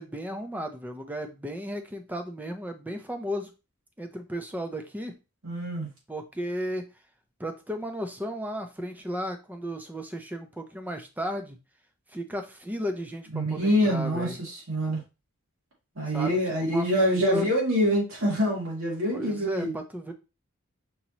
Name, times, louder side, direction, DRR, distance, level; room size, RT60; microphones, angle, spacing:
voice 1, 0.0-3.5 4.0-5.1 6.1-6.8 7.4-11.6 12.1-14.4 16.1-16.4 16.7-16.9 17.1-17.5 19.1-20.1, equal, 10° right, 6 dB, 0.6 m, -34 dB
voice 2, 5.4-5.9 13.3-15.0 16.0-19.7, equal, 75° right, -3 dB, 2.4 m, -25 dB
5.3 x 2.9 x 2.9 m, 0.29 s
head